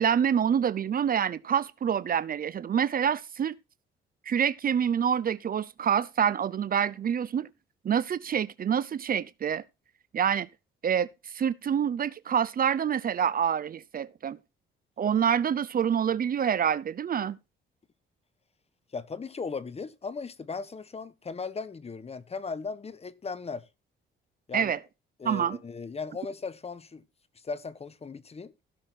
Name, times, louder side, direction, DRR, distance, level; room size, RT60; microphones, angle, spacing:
voice 1, 0.0-3.5 4.3-7.5 7.8-9.6 10.1-10.5 10.8-11.1 11.3-14.4 15.0-17.4 24.5-24.8 25.2-25.6, right 8 dB, 45° right, 0.7 m, -26 dB
voice 2, 18.9-23.6 24.5-24.7 25.2-27.0 27.4-28.5, left 4 dB, 30° left, 1.2 m, -37 dB
16.0 x 6.5 x 4.3 m
cardioid pair, 90°, 20 cm